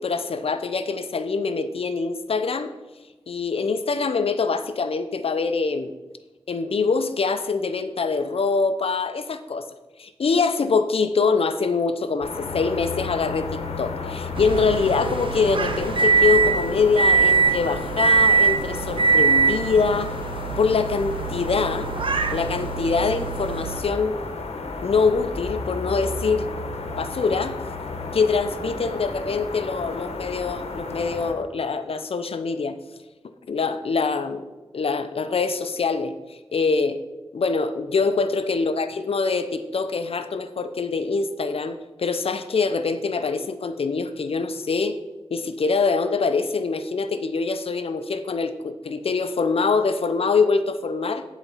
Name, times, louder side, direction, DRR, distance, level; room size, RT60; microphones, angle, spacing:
voice 1, 0.0-2.7 3.3-5.9 6.5-9.7 10.0-20.2 20.6-21.9 22.3-24.2 24.8-26.5 26.9-27.6 28.1-32.8 33.5-34.5 34.7-37.0 37.3-45.0 45.3-51.2, left 4 dB, 70° left, 10 dB, 0.6 m, -24 dB
sound 1, 12.2-31.3, left 3 dB, 85° left, 1.0 m, -33 dB
sound 2, 14.3-23.8, right 4 dB, 55° right, 0.8 m, -22 dB
10.0 x 4.1 x 5.6 m, 1.1 s
cardioid pair, 55°, 10 cm